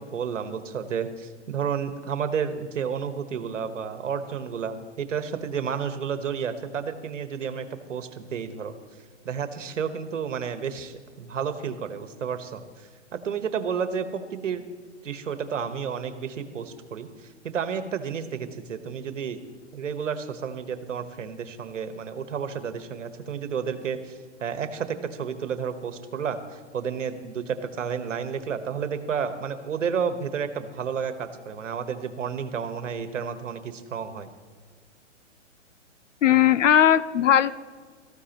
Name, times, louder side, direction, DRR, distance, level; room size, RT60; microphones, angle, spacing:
voice 1, 0.0-8.7 9.2-14.7 15.0-19.4 19.7-34.3, right 7 dB, 85° right, 9 dB, 1.4 m, -31 dB
voice 2, 36.2-37.5, left 10 dB, 80° left, 17 dB, 0.7 m, -18 dB
18.5 x 14.0 x 3.0 m, 1.5 s
hypercardioid pair, 145°, 37 cm